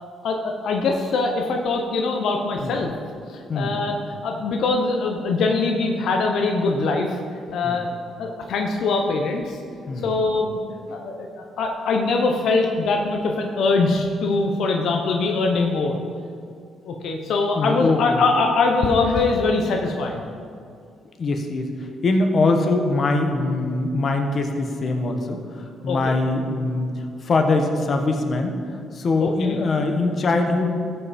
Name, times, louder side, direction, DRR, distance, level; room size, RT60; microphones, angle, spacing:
voice 1, 0.2-2.9 3.3-4.0 4.2-7.2 7.5-7.9 8.2-9.6 10.0-10.6 10.9-16.0 16.8-20.2 25.9-26.1 29.2-29.6, left 3 dB, 75° left, 2 dB, 0.8 m, -22 dB
voice 2, 17.5-18.2 21.2-28.6 28.9-30.7, left 2 dB, 45° left, 4 dB, 1.1 m, -22 dB
13.5 x 5.7 x 4.3 m, 2.3 s
cardioid pair, 90°, 0 cm